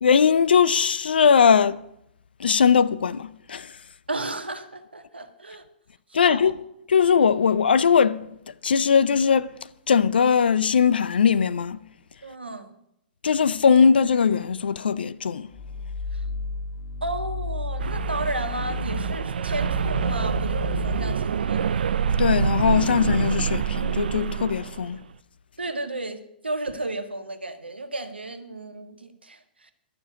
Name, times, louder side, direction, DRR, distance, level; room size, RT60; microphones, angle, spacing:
voice 1, 0.0-1.8 2.4-3.7 6.1-6.6 6.9-8.2 8.6-9.5 9.9-11.8 13.2-15.5 22.2-25.0, left 6 dB, 70° left, 0.6 m, -20 dB
voice 2, 4.1-5.6 6.1-6.5 12.2-12.7 16.1-16.2 17.0-21.7 25.6-29.7, right 2 dB, 85° right, 1.4 m, -33 dB
sound 1, 15.5-21.1, left 3 dB, 50° left, 3.2 m, -32 dB
sound 2, 17.8-25.0, right 7 dB, 70° right, 0.5 m, -26 dB
12.0 x 7.1 x 8.8 m
figure-of-eight pair, 110°, 6 cm